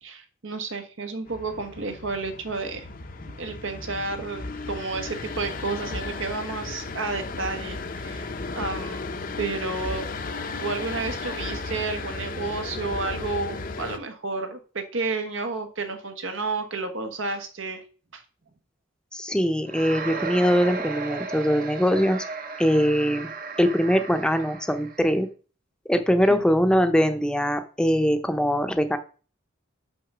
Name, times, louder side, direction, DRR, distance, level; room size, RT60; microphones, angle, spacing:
voice 1, 0.0-2.9 3.3-9.1 9.4-10.1 10.6-17.8 18.1-18.2 26.3-26.4, right 3 dB, 80° right, 6 dB, 1.4 m, -31 dB
sound 1, 1.3-14.0, left 3 dB, 45° left, 0.7 m, -34 dB
voice 2, 19.1-22.2 22.6-23.3 23.6-25.3 25.9-29.0, equal, 5° left, 8 dB, 0.7 m, -22 dB
sound 2, 19.7-25.1, right 4 dB, 45° right, 0.9 m, -35 dB
6.1 x 5.6 x 6.1 m, 0.38 s
head